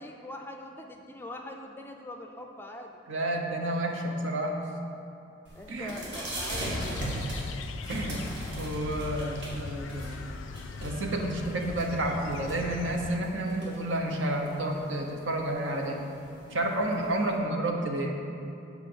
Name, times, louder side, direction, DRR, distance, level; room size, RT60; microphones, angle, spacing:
voice 1, 0.0-3.0 5.5-7.2, left 1 dB, 10° left, 3 dB, 0.4 m, -43 dB
voice 2, 3.1-4.6 5.7-5.9 7.9-8.2 8.6-10.2 10.8-16.1 16.5-18.2, right 1 dB, 75° right, 1 dB, 1.0 m, -30 dB
sound 1, 5.4-17.3, right 1 dB, 55° right, 1.9 m, -40 dB
sound 2, 6.7-13.2, left 4 dB, 75° left, 0.4 m, -40 dB
8.1 x 4.9 x 6.8 m, 2.8 s
head